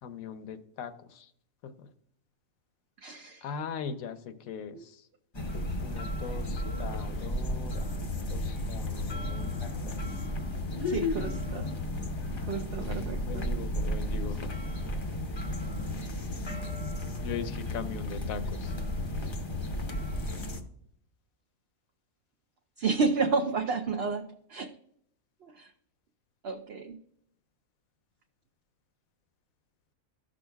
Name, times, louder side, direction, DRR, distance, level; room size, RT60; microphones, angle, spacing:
voice 1, 0.0-1.3 1.6-1.9 3.4-5.1 5.8-7.9 8.3-10.0 11.3-11.6 12.7-14.5 17.2-18.7, left 7 dB, 80° left, 11 dB, 1.1 m, -40 dB
voice 2, 3.0-3.4 4.7-4.8 10.9-11.7 12.5-13.5 22.8-24.7 25.4-25.7 26.4-27.0, right 4 dB, 60° right, 4 dB, 0.7 m, -31 dB
sound 1, 5.3-20.6, left 1 dB, 30° left, 0.5 m, -33 dB
14.5 x 6.2 x 2.3 m, 0.71 s
omnidirectional pair, 1.5 m